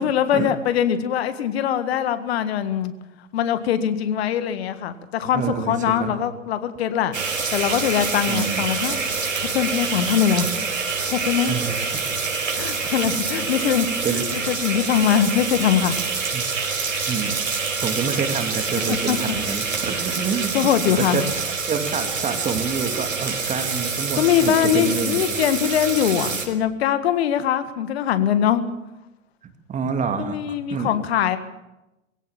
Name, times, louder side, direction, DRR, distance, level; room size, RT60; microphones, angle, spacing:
voice 1, 0.0-2.9 3.3-7.2 7.5-9.0 9.5-10.5 11.0-11.6 12.6-13.9 14.3-16.0 18.9-19.4 20.5-21.3 24.2-28.6 30.2-31.4, left 9 dB, 50° left, 11 dB, 1.8 m, -22 dB
voice 2, 5.3-6.2 8.3-8.6 11.4-12.2 14.0-14.3 16.3-16.4 17.1-17.4 17.8-21.2 21.7-25.2 29.7-30.4 30.7-30.9, right 6 dB, 20° right, 6 dB, 2.2 m, -27 dB
sound 1, 7.1-26.5, right 4 dB, 75° right, 4.8 m, -26 dB
22.0 x 16.5 x 7.3 m, 0.98 s
figure-of-eight pair, 100°, 39 cm